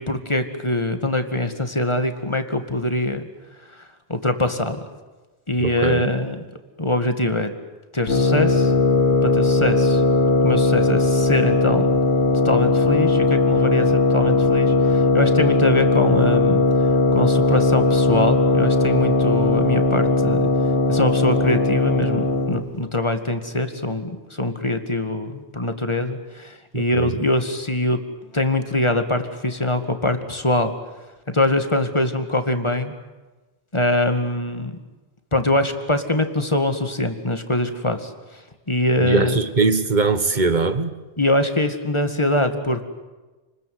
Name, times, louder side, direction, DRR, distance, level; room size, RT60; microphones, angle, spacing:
voice 1, 0.0-3.3 4.1-4.8 5.5-6.4 6.8-7.5 7.9-8.7 9.2-10.0 10.4-11.9 12.4-16.6 17.1-20.5 20.9-28.0 28.3-30.7 31.3-32.9 33.7-34.8 35.3-38.1 38.7-39.3 41.2-42.8, left 1 dB, 25° left, 2.1 m, -23 dB
voice 2, 5.6-6.1 26.7-27.2 39.0-40.9, right 4 dB, 40° right, 1.6 m, -21 dB
sound 1, 8.1-22.6, left 3 dB, 70° left, 3.0 m, -18 dB
29.5 x 20.5 x 9.6 m
omnidirectional pair, 1.2 m